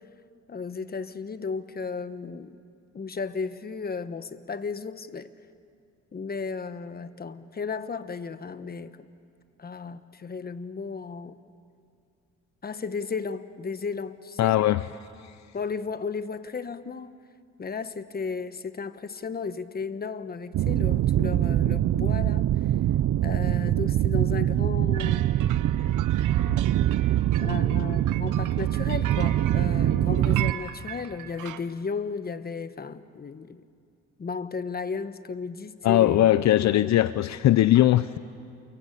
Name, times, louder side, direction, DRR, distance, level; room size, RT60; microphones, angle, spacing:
voice 1, 0.5-2.6 2.9-5.3 6.1-9.1 9.6-11.4 12.6-14.6 15.5-17.1 17.6-22.5 23.2-25.3 27.4-33.6 34.2-36.3 36.8-36.9, left 5 dB, 30° left, 12 dB, 1.2 m, -34 dB
voice 2, 14.4-14.9 26.5-26.6 35.8-38.2, left 13 dB, 65° left, 15 dB, 0.6 m, -20 dB
sound 1, 20.5-30.5, right 12 dB, 60° right, 0.7 m, -24 dB
sound 2, 24.9-31.6, right 13 dB, 85° right, 1.2 m, -40 dB
29.0 x 22.5 x 8.5 m, 2.3 s
cardioid pair, 90°, 30 cm